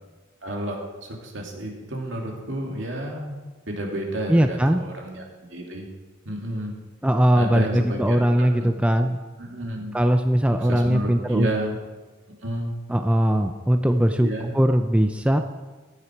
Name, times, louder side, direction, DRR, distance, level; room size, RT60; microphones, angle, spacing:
voice 1, 0.4-3.4 3.7-5.2 5.5-5.9 6.2-6.7 7.3-8.7 9.4-9.9 10.5-11.8 12.4-12.7 14.2-14.5, right 1 dB, 65° right, 0 dB, 2.6 m, -31 dB
voice 2, 4.3-4.8 7.0-9.2 9.9-11.5 12.9-14.3 14.5-15.4, equal, 5° right, 6 dB, 0.5 m, -20 dB
14.5 x 9.9 x 4.6 m, 1.3 s
head